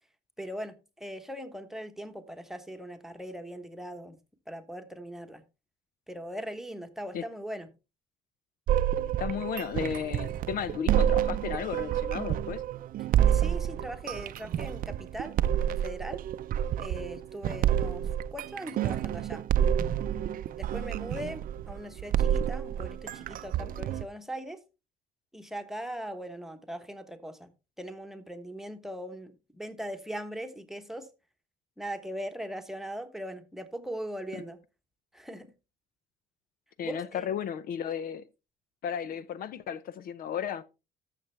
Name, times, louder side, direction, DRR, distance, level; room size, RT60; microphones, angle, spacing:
voice 1, 0.4-4.2 4.5-5.4 6.1-7.7 13.2-15.4 15.7-16.2 16.8-19.4 20.6-24.6 25.3-27.5 27.8-31.1 31.8-34.6 35.1-35.5 36.8-37.3, equal, ahead, 1.2 m, -40 dB
sound 1, 8.7-24.1, right 10 dB, 55° right, 0.5 m, -29 dB
voice 2, 9.2-12.6 36.8-38.3 38.8-40.6, left 8 dB, 60° left, 0.6 m, -34 dB
13.0 x 6.6 x 3.3 m
cardioid pair, 110°, 17 cm